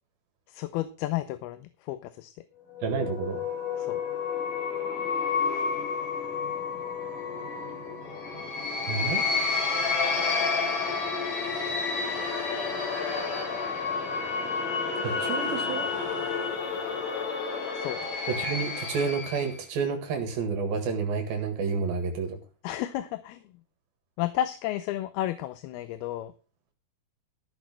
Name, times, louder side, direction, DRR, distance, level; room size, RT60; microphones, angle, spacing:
voice 1, 0.5-2.3 3.8-4.0 17.7-18.0 22.6-23.4 24.2-26.3, left 13 dB, 85° left, 12 dB, 2.7 m, -32 dB
sound 1, 2.8-19.6, left 5 dB, 60° left, 4.6 m, -30 dB
voice 2, 2.8-3.4 8.9-9.2 15.0-15.9 18.3-22.4, right 5 dB, 70° right, 6 dB, 3.5 m, -30 dB
14.5 x 6.4 x 6.2 m, 0.35 s
omnidirectional pair, 4.4 m